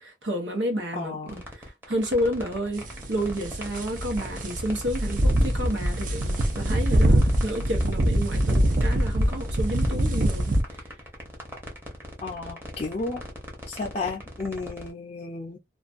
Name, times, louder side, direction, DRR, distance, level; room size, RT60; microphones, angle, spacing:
voice 1, 0.0-10.8, equal, 85° right, 0.9 m, -30 dB
voice 2, 0.9-1.4 12.2-13.2 13.7-15.6, left 3 dB, 35° left, 0.4 m, -33 dB
sound 1, 1.3-14.9, equal, 10° right, 0.7 m, -41 dB
sound 2, 2.7-10.6, right 1 dB, 45° right, 0.5 m, -24 dB
2.4 x 2.2 x 2.4 m
head